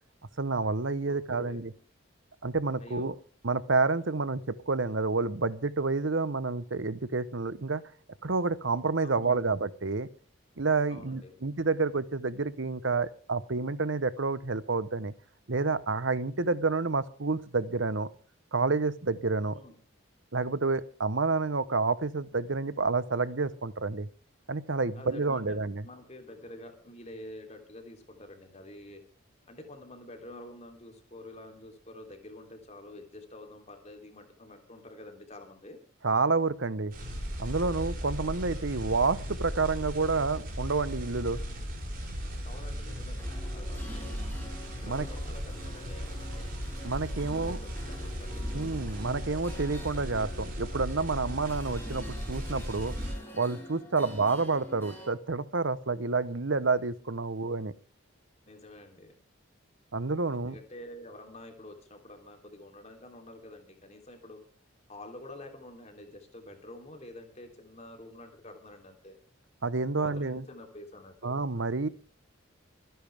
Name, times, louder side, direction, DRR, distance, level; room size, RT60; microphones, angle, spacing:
voice 1, 0.4-1.7 2.4-3.1 3.4-7.8 8.2-10.1 10.6-15.1 15.5-18.1 18.5-19.6 20.3-24.1 24.5-25.8 36.0-36.9 37.4-41.4 44.8-45.1 46.8-47.6 48.5-52.9 53.3-57.7 59.9-60.6 69.6-70.4 71.2-71.9, right 3 dB, 60° right, 16 dB, 0.9 m, -29 dB
voice 2, 1.1-1.6 2.8-3.1 9.0-9.4 10.9-11.4 19.5-19.8 25.0-25.6 25.8-29.0 29.5-35.8 42.4-43.2 43.5-44.2 44.8-46.5 47.3-48.6 53.9-54.3 58.5-59.2 60.3-64.4 64.9-69.2 69.9-71.4, left 1 dB, 30° left, 4 dB, 3.3 m, -48 dB
sound 1, 36.9-53.1, equal, 45° right, 6.7 m, -37 dB
sound 2, 43.1-55.1, equal, 10° left, 4.8 m, -47 dB
25.5 x 10.5 x 3.5 m, 0.40 s
head